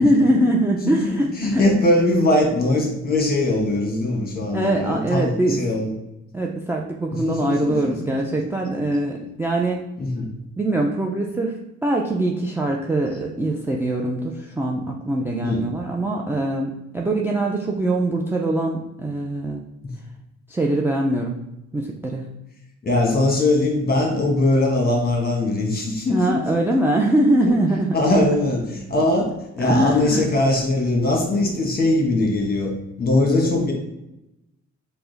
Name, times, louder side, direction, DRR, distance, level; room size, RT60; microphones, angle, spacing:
voice 1, 0.0-1.6 4.5-5.6 6.3-9.8 10.6-19.6 20.5-21.4 21.7-22.3 26.1-28.0 29.6-30.3, right 1 dB, 10° right, -1 dB, 0.4 m, -22 dB
voice 2, 0.9-5.9 7.1-7.9 10.0-10.3 15.4-15.6 19.8-19.9 22.8-26.4 27.9-32.7 33.0-33.7, left 2 dB, 30° left, 1 dB, 1.1 m, -21 dB
4.6 x 2.1 x 3.9 m, 0.91 s
cardioid pair, 90°, 30 cm